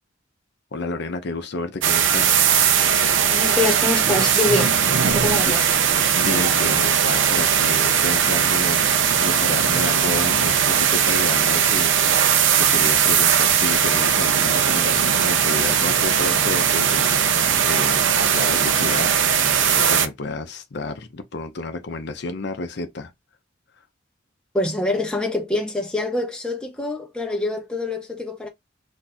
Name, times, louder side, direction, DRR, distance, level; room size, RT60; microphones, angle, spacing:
voice 1, 0.7-2.4 5.4-5.5 5.9-19.1 19.4-23.1, left 3 dB, 60° left, 0.6 m, -31 dB
sound 1, 1.8-20.1, right 8 dB, 75° right, 0.5 m, -19 dB
voice 2, 3.3-4.8 5.1-5.7 24.5-28.5, left 2 dB, 5° left, 0.6 m, -25 dB
2.5 x 2.4 x 4.0 m
head